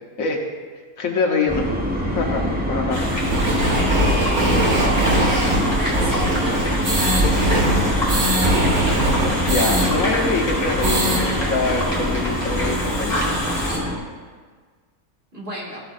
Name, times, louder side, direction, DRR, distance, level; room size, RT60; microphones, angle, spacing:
voice 1, 1.0-1.7 2.2-3.0 3.4-3.6 9.4-13.4, left 4 dB, 70° left, 2 dB, 1.4 m, -24 dB
sound 1, 1.5-14.0, equal, 10° right, 0.9 m, -25 dB
sound 2, 2.9-13.8, left 1 dB, 30° left, 2.5 m, -27 dB
sound 3, 3.3-9.9 10.2-10.3 10.6-11.2, right 1 dB, 85° right, 2.1 m, -21 dB
voice 2, 3.8-5.0 5.6-7.2 15.3-15.8, right 1 dB, 45° right, -4 dB, 2.4 m, -32 dB
14.0 x 7.8 x 2.5 m, 1.5 s
omnidirectional pair, 1.5 m